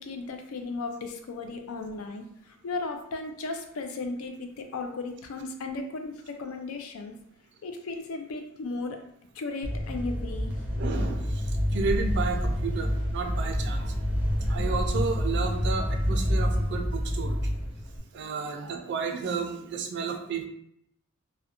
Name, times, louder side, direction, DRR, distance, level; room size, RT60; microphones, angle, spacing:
voice 1, 0.0-7.1 7.6-9.0 9.3-10.5, left 3 dB, 75° left, 5 dB, 0.4 m, -35 dB
sound 1, 9.6-18.0, equal, 5° right, 0.5 m, -28 dB
voice 2, 10.8-11.4 11.7-13.9 14.5-17.4 18.1-20.5, right 4 dB, 55° right, 4 dB, 0.4 m, -32 dB
2.4 x 2.1 x 2.8 m, 0.73 s
head